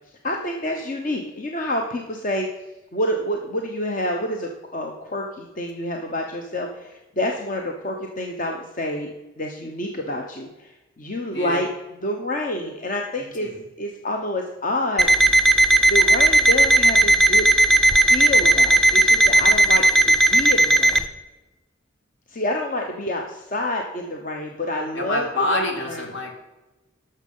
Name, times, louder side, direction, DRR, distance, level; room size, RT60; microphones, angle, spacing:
voice 1, 0.2-2.5 2.9-9.1 9.4-11.7 12.0-13.5 13.8-15.1 15.9-17.5 18.1-21.0 22.3-26.1, left 1 dB, 40° left, 2 dB, 0.9 m, -28 dB
Alarm, 15.0-21.0, right 1 dB, ahead, 0.5 m, -16 dB
voice 2, 24.9-26.3, left 2 dB, 65° left, 3 dB, 2.3 m, -26 dB
11.5 x 6.7 x 5.5 m, 1.1 s
head